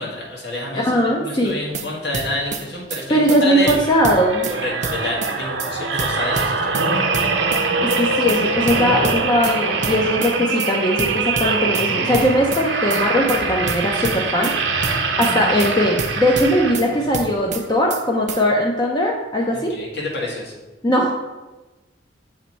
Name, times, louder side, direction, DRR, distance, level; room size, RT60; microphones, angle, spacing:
voice 1, 0.0-3.7 4.5-7.1 19.5-20.5, left 1 dB, 65° left, -4 dB, 1.7 m, -28 dB
voice 2, 0.7-1.6 3.1-4.5 7.8-14.8 15.2-19.8 20.8-21.2, equal, 25° left, -1 dB, 0.5 m, -19 dB
sound 1, 1.5-1.9 2.1-2.6 2.9-3.0 3.3-3.4 3.7-4.6 4.8-5.3 5.6-5.7 6.0-6.9 7.1-7.6 7.9-8.0 8.3-8.4 8.7-9.6 9.8-10.3 10.6-10.7 11.0-11.9 12.1-12.6 12.9-13.0 13.3-13.4 13.7-14.6 14.8-15.3 15.6-15.7 16.0-16.9 17.1-17.6 17.9-18.0 18.3-18.4, right 5 dB, 40° right, 0.5 m, -28 dB
sound 2, 3.5-17.1 17.7-17.9, right 4 dB, 85° right, 0.8 m, -23 dB
7.3 x 3.1 x 4.3 m, 1.1 s
head